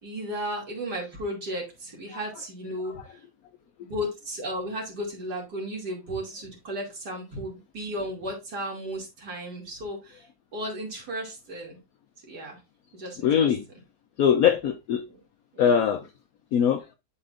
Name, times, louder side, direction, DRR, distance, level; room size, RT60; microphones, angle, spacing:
voice 1, 0.0-3.2 3.8-10.3 10.5-11.8 12.3-12.6 12.9-13.5 15.5-15.6, equal, 60° right, 3.0 m, -34 dB
voice 2, 13.2-13.6 14.2-15.0 15.6-16.1 16.5-16.9, left 8 dB, 70° left, 0.8 m, -22 dB
11.0 x 4.3 x 2.5 m
omnidirectional pair, 2.0 m